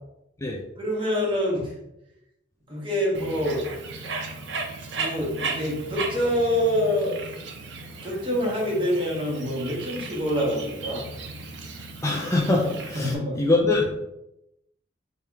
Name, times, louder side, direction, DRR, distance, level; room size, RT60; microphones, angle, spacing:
voice 1, 0.8-1.7 2.7-3.6 4.9-7.3 8.0-11.1 12.9-13.4, equal, 30° right, -3 dB, 1.4 m, -26 dB
Bird, 3.1-13.1, right 3 dB, 65° right, 0.7 m, -36 dB
voice 2, 12.0-14.0, left 2 dB, 15° left, -1 dB, 0.5 m, -23 dB
4.4 x 3.4 x 3.5 m, 0.86 s
head